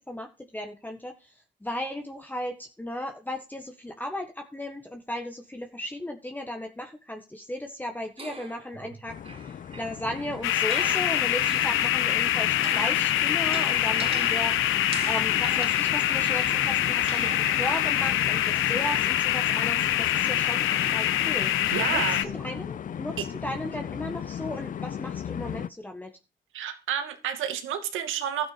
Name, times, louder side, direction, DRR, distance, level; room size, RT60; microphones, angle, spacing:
voice 1, 0.1-14.6 15.1-21.5 21.9-26.1, left 1 dB, 10° left, 1.8 m, -36 dB
sound 1, 8.2-12.0 12.4-18.2, right 4 dB, 30° right, 3.9 m, -42 dB
sound 2, 9.1-25.7, left 8 dB, 40° left, 0.5 m, -37 dB
sound 3, 10.4-22.2, left 12 dB, 80° left, 0.9 m, -25 dB
voice 2, 21.7-22.2 26.5-28.5, right 9 dB, 90° right, 2.4 m, -30 dB
13.0 x 9.2 x 5.3 m
cardioid pair, 90°, 20 cm